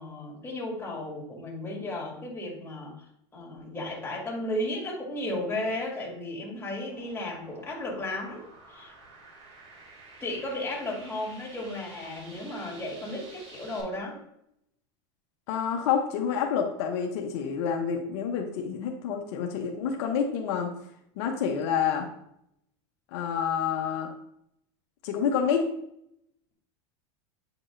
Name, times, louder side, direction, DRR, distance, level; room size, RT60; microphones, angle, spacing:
voice 1, 0.0-3.0 3.3-8.9 10.2-14.2, left 1 dB, 15° left, -3 dB, 2.4 m, -34 dB
sound 1, 6.9-13.8, right 2 dB, 55° right, 2.4 m, -50 dB
voice 2, 15.5-20.7 21.2-22.1 23.1-24.1 25.0-25.6, left 7 dB, 70° left, 3 dB, 0.8 m, -28 dB
8.7 x 4.6 x 2.6 m, 0.77 s
supercardioid pair, 115°, 15 cm